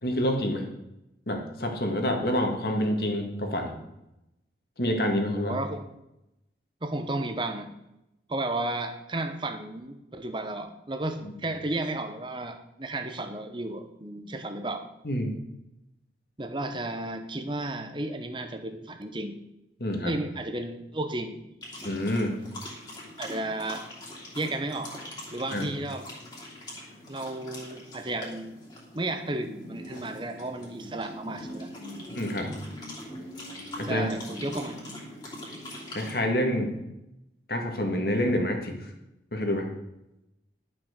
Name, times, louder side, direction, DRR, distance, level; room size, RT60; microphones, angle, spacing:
voice 1, 0.0-0.7 1.3-3.7 4.8-5.6 11.2-11.3 15.0-15.3 19.8-20.1 21.8-22.4 25.5-25.7 32.1-32.5 33.8-34.1 35.9-36.7 37.5-38.9 39.3-39.7, equal, 55° left, 3 dB, 2.0 m, -27 dB
voice 2, 5.4-5.8 6.8-7.7 8.3-14.8 16.4-19.4 20.0-21.4 23.2-23.8 24.3-24.9 25.3-26.0 27.1-28.5 28.9-32.0 33.9-34.9, right 2 dB, 25° right, 7 dB, 0.9 m, -33 dB
sound 1, 21.6-36.3, left 1 dB, 25° left, 2.9 m, -42 dB
11.5 x 6.1 x 6.6 m, 0.88 s
head